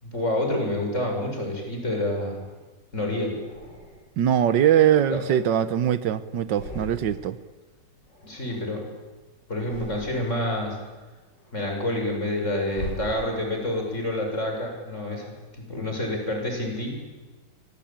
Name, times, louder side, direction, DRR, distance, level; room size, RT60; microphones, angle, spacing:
voice 1, 0.0-2.4 2.9-3.4 5.1-5.2 8.2-8.8 9.5-10.8 11.5-17.0, left 1 dB, 40° left, 2 dB, 7.5 m, -28 dB
sound 1, 1.8-2.7 3.3-4.3 4.8-6.0 6.3-7.4 7.7-9.1 9.5-10.5 11.0-13.7, left 1 dB, 90° left, 5.8 m, -43 dB
voice 2, 4.2-7.4, right 10 dB, 85° right, 13 dB, 1.7 m, -21 dB
26.0 x 25.0 x 9.0 m, 1.3 s
omnidirectional pair, 1.9 m